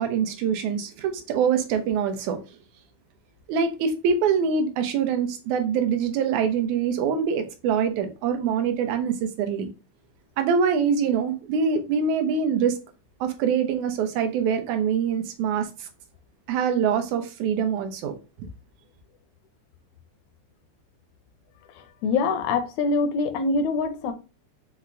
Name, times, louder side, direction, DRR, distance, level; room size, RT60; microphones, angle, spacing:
voice 1, 0.0-2.4 3.5-9.7 10.4-12.8 13.2-15.9 16.5-18.1 18.4-18.5, right 6 dB, 80° right, 2.0 m, -24 dB
voice 2, 22.0-24.1, left 4 dB, 80° left, 1.8 m, -24 dB
5.6 x 2.1 x 3.7 m
omnidirectional pair, 3.4 m